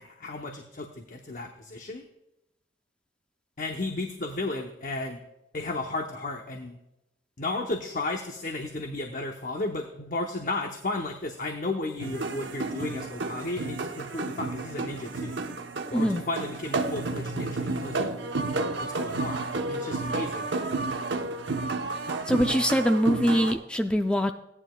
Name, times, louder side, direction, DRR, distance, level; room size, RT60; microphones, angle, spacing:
voice 1, 0.0-2.0 3.6-5.2 5.5-6.8 7.4-15.4 15.9-18.1 18.8-19.4 19.7-20.5, left 2 dB, 45° left, 3 dB, 0.8 m, -34 dB
sound 1, 12.0-23.5, right 3 dB, 90° right, 0.9 m, -31 dB
voice 2, 15.9-16.2 22.3-24.3, equal, 5° left, 6 dB, 0.3 m, -23 dB
17.0 x 9.8 x 2.2 m, 0.89 s
head